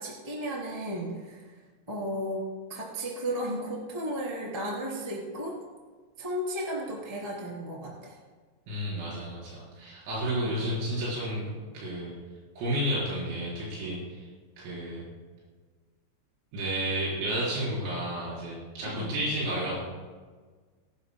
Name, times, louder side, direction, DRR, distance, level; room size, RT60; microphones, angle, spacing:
voice 1, 0.0-1.5 1.9-5.6 6.2-8.2 10.2-10.6 18.8-19.1, equal, 5° right, -5 dB, 2.5 m, -34 dB
voice 2, 8.7-12.1 12.6-14.3 14.6-15.0 16.5-19.8, right 1 dB, 80° right, -7 dB, 7.0 m, -31 dB
23.0 x 12.5 x 2.2 m, 1.4 s
omnidirectional pair, 6.0 m